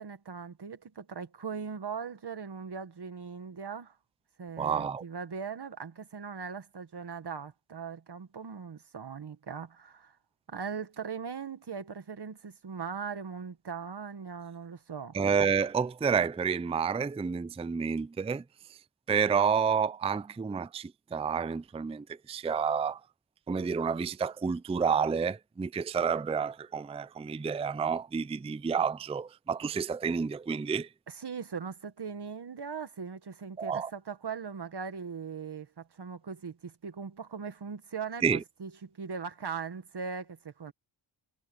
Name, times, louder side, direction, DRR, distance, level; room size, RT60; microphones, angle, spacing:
voice 1, 0.0-3.9 4.4-10.2 10.5-15.2 31.1-40.7, right 6 dB, 55° right, 1.7 m, -40 dB
voice 2, 4.6-5.0 15.1-18.4 19.1-23.0 23.5-30.9 33.6-33.9 38.2-38.4, right 6 dB, 15° right, 0.4 m, -29 dB
wide cardioid pair, 100°, 49 cm